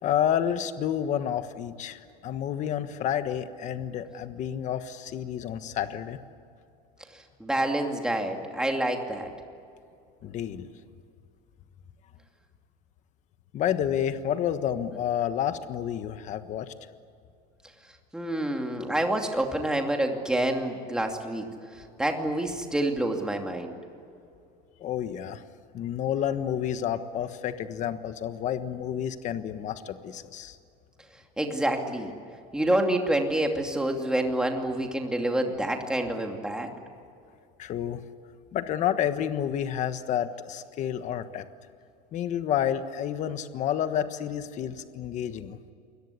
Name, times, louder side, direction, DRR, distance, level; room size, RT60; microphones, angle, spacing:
voice 1, 0.0-6.2 10.2-10.7 13.5-16.7 24.8-25.4 25.7-30.6 37.6-38.0 38.5-41.4 42.1-45.6, left 10 dB, 40° left, 10 dB, 1.4 m, -30 dB
voice 2, 7.4-9.3 18.1-21.5 22.0-23.8 31.4-32.1 32.5-36.7, right 1 dB, 5° right, 2 dB, 2.6 m, -27 dB
28.5 x 22.0 x 8.4 m, 2.5 s
cardioid pair, 165°, 20 cm